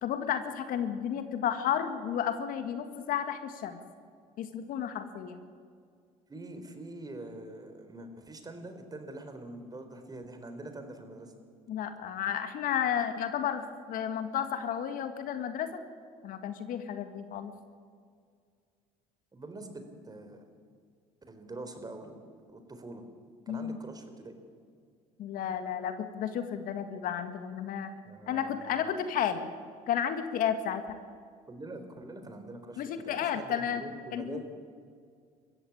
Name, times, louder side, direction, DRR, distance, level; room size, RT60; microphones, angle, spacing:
voice 1, 0.0-3.8 4.4-5.4 11.7-15.8 16.2-17.5 23.5-23.8 25.2-27.9 28.3-29.5 29.9-31.0 32.8-33.8 34.1-34.4, left 9 dB, 65° left, 8 dB, 1.9 m, -32 dB
voice 2, 6.3-11.3 19.3-20.5 21.3-22.1 22.5-23.0 23.5-24.3 28.0-29.0 31.5-34.4, right 2 dB, 25° right, 7 dB, 4.1 m, -44 dB
22.5 x 15.5 x 8.8 m, 2.1 s
supercardioid pair, 75°, 16 cm